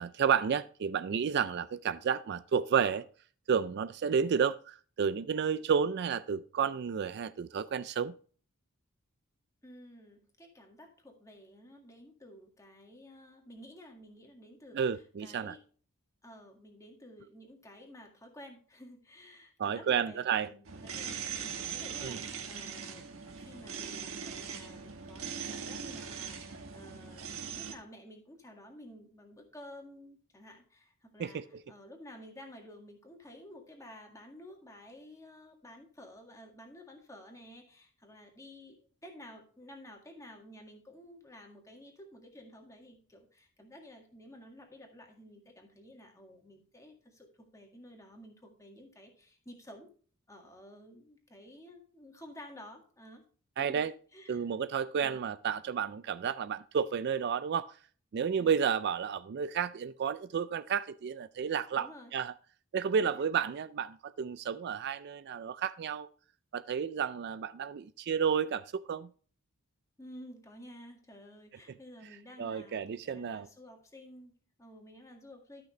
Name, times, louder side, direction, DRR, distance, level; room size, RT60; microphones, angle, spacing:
voice 1, 0.0-3.1 3.5-8.1 14.7-15.6 19.6-20.5 22.0-22.2 31.2-31.6 53.6-53.9 54.3-57.7 58.1-62.3 62.7-66.1 66.5-69.1 72.4-73.5, right 7 dB, 50° right, 0.3 m, -31 dB
voice 2, 9.6-15.6 16.2-22.2 22.5-49.9 50.3-53.2 53.6-53.8 54.1-54.4 58.4-58.6 61.8-62.1 63.0-63.2 70.0-75.6, left 1 dB, 15° left, 1.8 m, -52 dB
sound 1, 20.6-27.7, right 6 dB, 65° right, 1.3 m, -41 dB
12.5 x 5.8 x 3.1 m
head